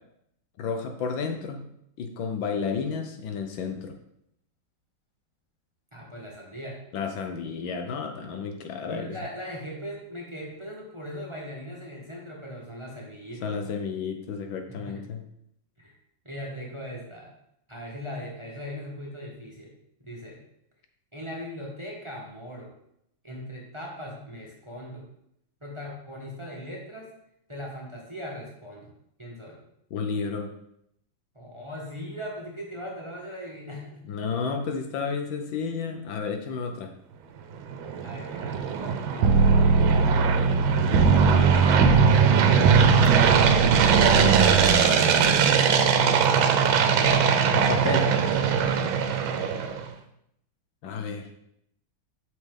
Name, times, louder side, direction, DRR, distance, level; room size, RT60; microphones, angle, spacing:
voice 1, 0.6-1.6 2.0-4.0 6.9-9.2 13.4-15.2 29.9-30.5 34.1-36.9 47.5-48.1 50.8-51.3, left 5 dB, 75° left, 5 dB, 1.6 m, -31 dB
voice 2, 5.9-6.8 8.9-13.7 14.8-15.0 15.8-16.0 16.2-17.3 17.7-19.7 20.0-20.4 21.1-22.7 23.2-25.0 25.6-27.1 27.5-28.9 29.2-29.6 31.3-34.0 38.0-40.2 41.1-46.2 49.1-49.8, equal, 15° right, -3 dB, 1.3 m, -39 dB
sound 1, 37.5-49.8, right 7 dB, 80° right, 1.5 m, -22 dB
sound 2, 39.2-44.7, right 4 dB, 60° right, 1.1 m, -21 dB
8.6 x 6.1 x 3.8 m, 0.75 s
omnidirectional pair, 2.2 m